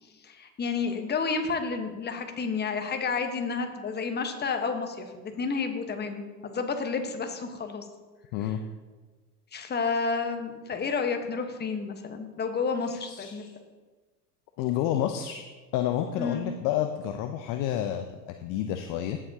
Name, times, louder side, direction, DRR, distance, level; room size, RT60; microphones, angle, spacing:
voice 1, 0.2-7.8 8.4-8.5 9.5-13.5 16.2-16.5, left 5 dB, 20° left, 6 dB, 1.2 m, -30 dB
voice 2, 13.0-13.5 14.6-15.5 15.7-19.2, left 11 dB, 40° left, 7 dB, 0.7 m, -29 dB
16.0 x 7.4 x 2.8 m, 1.3 s
hypercardioid pair, 85°, 49 cm